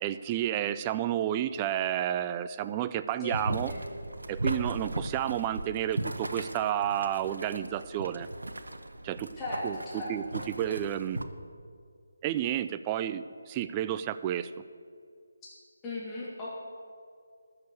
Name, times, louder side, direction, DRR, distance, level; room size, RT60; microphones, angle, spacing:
voice 1, 0.0-3.7 4.3-8.3 9.0-9.3 9.6-11.2 12.2-14.5, right 11 dB, 20° right, 12 dB, 0.4 m, -31 dB
Boiling, 3.3-11.2, right 1 dB, 85° right, 1.0 m, -37 dB
voice 2, 9.4-10.4 15.8-16.6, left 2 dB, 15° left, -7 dB, 2.7 m, -37 dB
13.0 x 6.8 x 8.3 m, 2.3 s
figure-of-eight pair, 160°, 0 cm